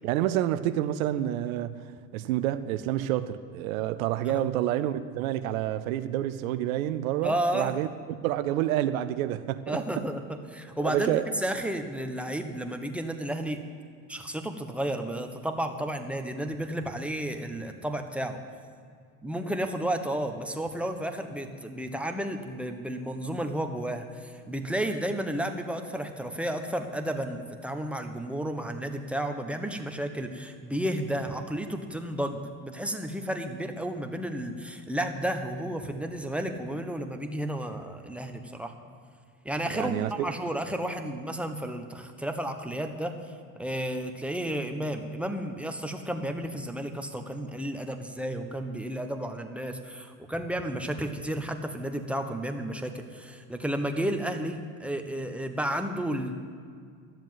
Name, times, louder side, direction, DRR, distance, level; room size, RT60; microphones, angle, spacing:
voice 1, 0.0-9.8 10.8-11.3 39.7-40.3, right 13 dB, 80° right, 11 dB, 0.7 m, -28 dB
voice 2, 7.2-7.8 9.7-11.1 11.4-13.6 14.1-18.4 19.2-38.7 39.4-43.2 43.6-56.3, right 1 dB, 5° right, 5 dB, 1.2 m, -32 dB
13.0 x 7.4 x 9.2 m, 2.1 s
hypercardioid pair, 90°, 41 cm